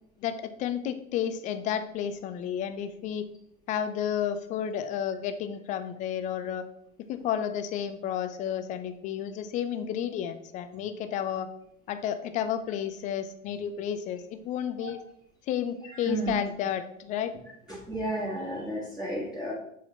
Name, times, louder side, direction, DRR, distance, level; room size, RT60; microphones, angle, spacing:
voice 1, 0.2-3.3 3.7-6.6 7.1-11.5 11.9-15.0 15.5-17.3, left 9 dB, 20° left, 10 dB, 0.3 m, -31 dB
voice 2, 15.8-16.3 17.7-19.5, right 1 dB, ahead, -6 dB, 1.4 m, -33 dB
7.4 x 4.3 x 3.9 m, 0.75 s
figure-of-eight pair, 85°, 41 cm